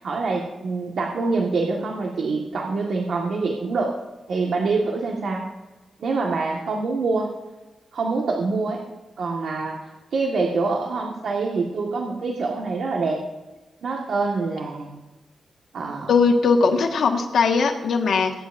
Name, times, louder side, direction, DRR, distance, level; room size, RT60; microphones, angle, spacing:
voice 1, 0.0-3.9 4.3-5.4 6.0-7.3 7.9-8.8 9.2-13.2 13.8-15.0 15.7-16.1, right 3 dB, 75° right, -1 dB, 1.7 m, -25 dB
voice 2, 16.1-18.3, left 4 dB, 80° left, 3 dB, 1.6 m, -19 dB
23.0 x 10.0 x 2.7 m, 1.1 s
cardioid pair, 75°, 0 cm